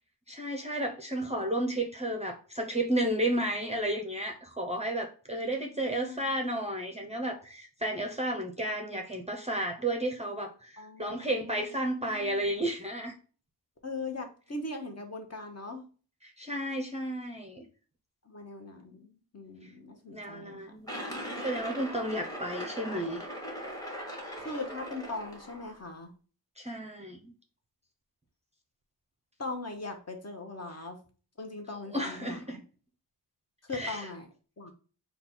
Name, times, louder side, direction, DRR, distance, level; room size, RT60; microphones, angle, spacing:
voice 1, 0.3-13.2 16.2-17.6 20.1-20.9 21.2-23.2 26.6-27.3 31.9-32.6 33.7-34.1, right 1 dB, 15° right, 0.5 m, -32 dB
voice 2, 5.4-6.4 10.8-12.5 13.8-15.9 18.3-20.8 24.4-26.1 29.4-31.0 31.4-32.6 33.7-34.3 34.6-34.7, left 2 dB, 35° left, 0.8 m, -40 dB
sound 1, 20.9-25.8, equal, 10° left, 1.1 m, -40 dB
4.1 x 2.3 x 4.2 m
wide cardioid pair, 130°, 43 cm